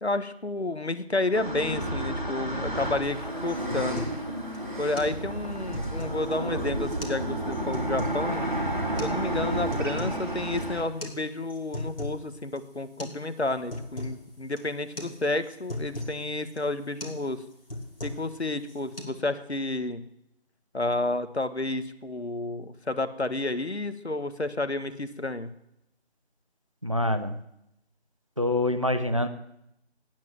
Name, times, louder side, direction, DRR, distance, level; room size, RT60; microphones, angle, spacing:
voice 1, 0.0-4.1 4.8-8.4 9.0-17.4 18.0-20.0 20.7-25.5, left 2 dB, 75° left, 12 dB, 1.4 m, -31 dB
sound 1, 1.3-10.8, right 1 dB, 45° right, 3.0 m, -31 dB
sound 2, 3.0-3.2 3.5-4.2 4.5-4.6 5.0-5.2 5.5-6.3 6.9-7.2 7.5-8.2 9.0-9.1 9.5-10.2 10.5-10.6 11.0-11.2 11.5-12.2 12.6-12.7 13.0-13.2 13.5-14.2 14.6-14.7 15.0-15.2 15.4-16.2 16.6-16.7 17.0-17.2 17.5-18.3 18.6-19.0, left 2 dB, 60° left, 3.2 m, -37 dB
voice 2, 26.8-27.4 28.4-29.3, left 1 dB, 30° right, 10 dB, 0.8 m, -25 dB
18.5 x 7.6 x 8.0 m, 0.82 s
figure-of-eight pair, 165°, 33 cm